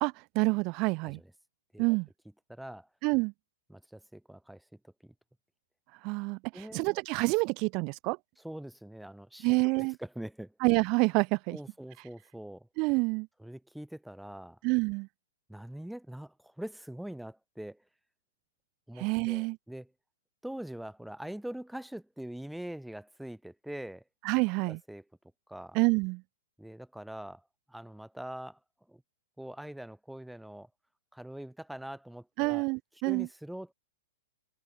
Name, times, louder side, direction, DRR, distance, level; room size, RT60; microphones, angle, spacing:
voice 1, 0.0-1.2 1.8-2.1 3.0-3.3 6.0-6.4 6.7-8.2 9.4-10.0 10.6-11.6 12.8-13.3 14.6-15.1 19.0-19.6 24.3-24.8 25.7-26.2 32.4-33.3, right 28 dB, 30° right, 0.4 m, -27 dB
voice 2, 2.5-2.9 3.7-4.6 5.0-5.1 6.5-6.9 8.4-10.5 11.5-12.7 13.4-14.6 15.5-17.8 18.9-19.9 20.4-24.0 24.7-25.0 25.5-25.8 26.6-28.6 28.9-29.0 29.4-30.7 31.1-32.7 33.0-33.7, right 1 dB, ahead, 1.4 m, -43 dB
open air
hypercardioid pair, 160°, 0 cm